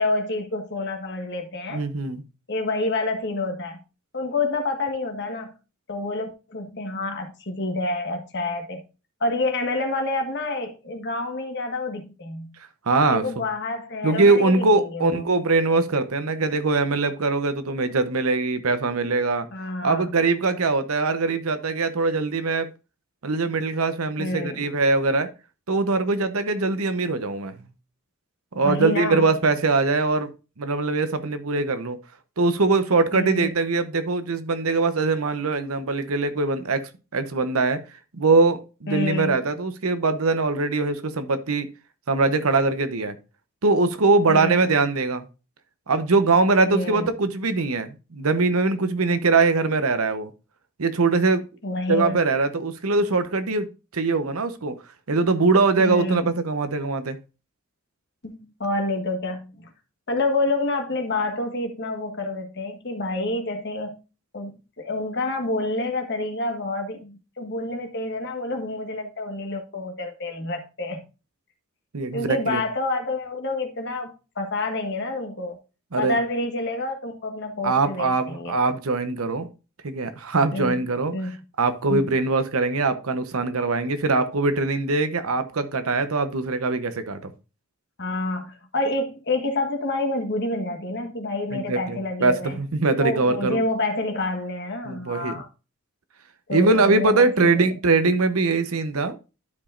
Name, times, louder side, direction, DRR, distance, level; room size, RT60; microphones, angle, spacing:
voice 1, 0.0-1.8 2.5-3.8 4.1-5.5 5.9-8.8 9.2-12.5 13.1-15.2 19.5-20.1 24.2-24.6 28.6-29.3 33.1-33.5 38.9-39.3 44.3-44.7 46.6-47.1 51.6-52.2 55.8-56.3 58.2-59.7 60.1-64.0 64.3-71.0 72.1-75.6 75.9-78.6 80.5-80.7 81.1-81.3 81.9-82.0 88.0-92.6 93.0-95.5 96.5-97.7, left 2 dB, 55° left, 1.5 m, -28 dB
voice 2, 1.7-2.2 12.9-13.4 14.0-19.5 19.8-22.7 23.2-25.3 25.7-27.6 28.5-30.3 30.6-32.0 32.4-37.8 38.1-41.7 42.1-43.2 43.6-45.3 45.9-50.3 50.8-51.4 51.9-53.7 53.9-54.7 55.1-57.2 71.9-72.6 75.9-76.2 77.6-79.5 79.8-87.3 91.5-93.6 94.8-95.4 96.5-99.2, right 3 dB, 85° right, 0.9 m, -22 dB
12.0 x 5.0 x 2.5 m
head